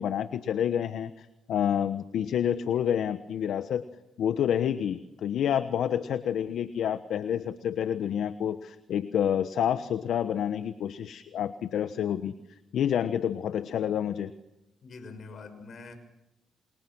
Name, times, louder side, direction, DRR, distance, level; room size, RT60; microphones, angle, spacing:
voice 1, 0.0-3.9 4.2-12.3 12.7-14.3, left 9 dB, 70° left, 11 dB, 1.2 m, -28 dB
voice 2, 14.8-16.0, left 4 dB, 55° left, 8 dB, 6.2 m, -44 dB
30.0 x 27.0 x 6.3 m, 0.91 s
cardioid pair, 75°, 0 cm